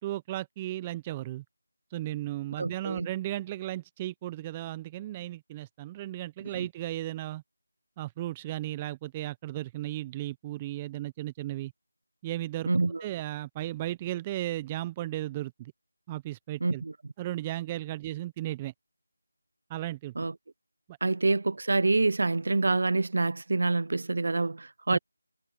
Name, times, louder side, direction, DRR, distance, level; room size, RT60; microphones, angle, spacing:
voice 1, 0.0-1.4 1.9-7.4 8.0-11.7 12.2-12.7 13.0-15.7 16.1-16.8 17.2-18.7 19.7-20.1 20.9-21.0 24.9-25.0, right 15 dB, 15° right, 0.6 m, -35 dB
voice 2, 2.6-3.1 6.6-6.7 12.7-13.0 16.6-16.9 20.2-20.3 21.0-25.0, right 3 dB, 55° right, 0.8 m, -26 dB
figure-of-eight pair, 165°, 0 cm